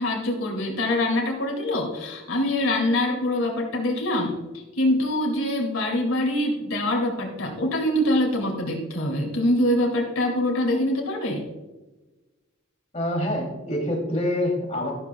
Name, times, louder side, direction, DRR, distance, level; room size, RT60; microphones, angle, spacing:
voice 1, 0.0-11.5, left 1 dB, 90° left, 0 dB, 2.6 m, -24 dB
voice 2, 12.9-14.9, left 1 dB, 35° left, 0 dB, 2.9 m, -26 dB
13.0 x 12.5 x 2.3 m, 1.1 s
head